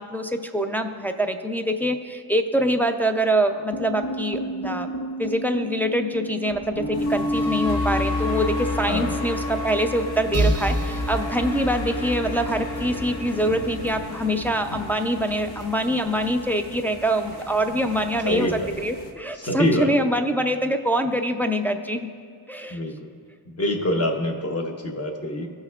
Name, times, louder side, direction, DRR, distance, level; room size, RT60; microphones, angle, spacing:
voice 1, 0.0-22.1 22.5-22.8, equal, 5° left, 4 dB, 0.3 m, -24 dB
sound 1, 3.7-15.9, left 1 dB, 75° left, 1.1 m, -30 dB
sound 2, 6.9-19.1, left 2 dB, 60° left, 1.1 m, -41 dB
sound 3, 10.3-14.0, right 1 dB, 35° right, 0.6 m, -28 dB
voice 2, 18.2-18.7 19.3-20.1 22.7-23.1 23.5-25.5, left 1 dB, 30° left, 3 dB, 0.9 m, -25 dB
16.5 x 5.6 x 2.3 m, 2.2 s
wide cardioid pair, 95°, 46 cm